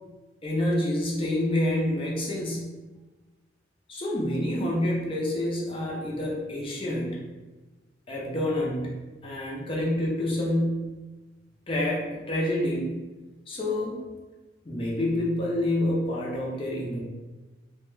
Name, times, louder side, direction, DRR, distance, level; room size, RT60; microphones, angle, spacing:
voice 1, 0.4-2.7 3.9-7.2 8.1-8.9 9.2-10.9 11.7-13.0 13.5-14.0 14.6-17.0, left 1 dB, 30° left, -4 dB, 0.6 m, -27 dB
2.4 x 2.2 x 3.0 m, 1.2 s
head